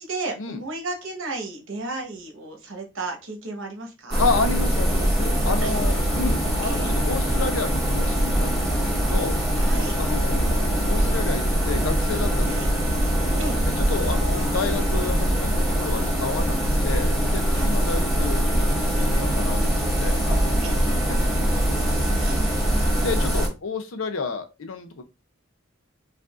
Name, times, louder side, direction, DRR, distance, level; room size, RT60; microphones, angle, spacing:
voice 1, 0.0-4.2 5.6-5.8 6.6-6.9 9.6-9.9 12.5-12.7 13.4-13.6 17.5-17.7 18.1-18.2 20.6-21.0 22.2-22.4, right 2 dB, 70° right, 3 dB, 1.2 m, -33 dB
sound 1, 4.1-23.5, equal, ahead, 1.7 m, -22 dB
voice 2, 4.2-9.4 10.0-12.8 13.8-16.6 16.8-20.6 21.1-25.0, left 4 dB, 70° left, 8 dB, 0.7 m, -31 dB
4.7 x 2.5 x 2.5 m, 0.26 s
head